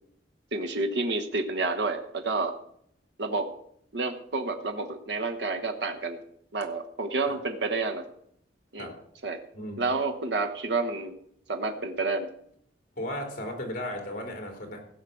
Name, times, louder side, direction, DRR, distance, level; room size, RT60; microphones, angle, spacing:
voice 1, 0.5-2.5 3.2-3.5 3.9-6.2 6.5-8.0 8.7-8.9 9.2-9.4 9.8-11.1 11.5-12.3, right 3 dB, 70° right, 5 dB, 1.1 m, -29 dB
voice 2, 9.5-9.9 13.0-14.8, left 1 dB, 50° left, 3 dB, 3.4 m, -35 dB
15.5 x 5.7 x 7.8 m, 0.71 s
head